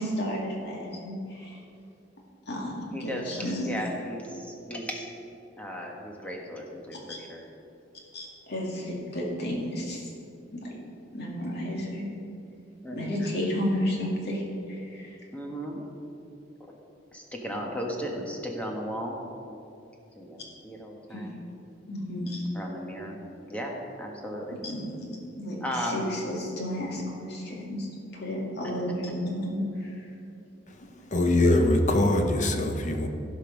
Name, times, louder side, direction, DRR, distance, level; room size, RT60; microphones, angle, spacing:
voice 1, 0.0-1.6 2.5-3.7 7.1-7.2 8.1-10.1 10.6-10.7 11.1-12.1 12.9-14.4 14.7-15.2 21.1-21.2 21.9-22.4 24.6-24.8 25.1-27.9 28.1-30.0 30.8-30.9, equal, 60° left, -2 dB, 2.2 m, -32 dB
voice 2, 2.9-5.0 5.6-7.4 12.8-13.2 15.3-15.8 16.6-16.8 17.1-19.2 20.2-21.4 22.5-23.2 23.5-24.6 25.6-26.2 28.6-28.7, equal, 5° left, 0 dB, 1.3 m, -35 dB
voice 3, 31.1-33.1, left 1 dB, 40° left, 5 dB, 0.9 m, -23 dB
15.5 x 5.3 x 5.2 m, 2.7 s
head